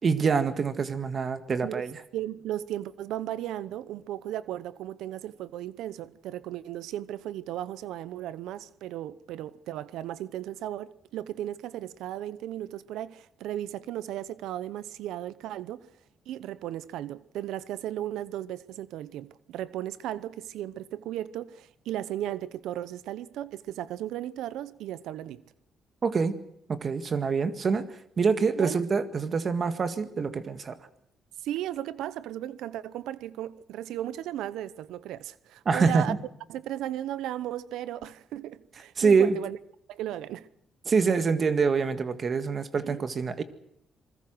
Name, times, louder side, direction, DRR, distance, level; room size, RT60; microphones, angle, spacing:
voice 1, 0.0-2.0 26.0-26.3 26.7-27.8 28.2-30.8 35.7-36.2 39.0-39.4 40.9-43.4, right 5 dB, 45° right, 1.9 m, -25 dB
voice 2, 1.6-15.9 16.3-25.4 28.4-28.8 31.4-36.1 36.5-39.6 39.9-40.5 42.8-43.1, right 12 dB, 85° right, 0.8 m, -36 dB
27.0 x 20.5 x 6.2 m
cardioid pair, 90°, 0 cm